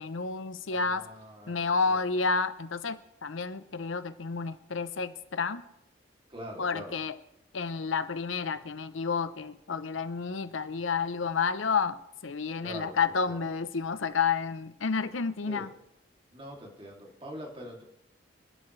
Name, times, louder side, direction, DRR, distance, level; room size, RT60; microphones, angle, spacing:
voice 1, 0.0-1.0 1.5-5.6 6.6-7.2 7.5-12.0 12.2-15.7, left 5 dB, 85° left, 12 dB, 0.7 m, -30 dB
voice 2, 0.7-2.1 6.3-7.0 12.6-13.4 15.5-15.7 16.3-17.8, equal, 25° right, -1 dB, 2.7 m, -44 dB
25.5 x 11.0 x 3.2 m, 0.84 s
head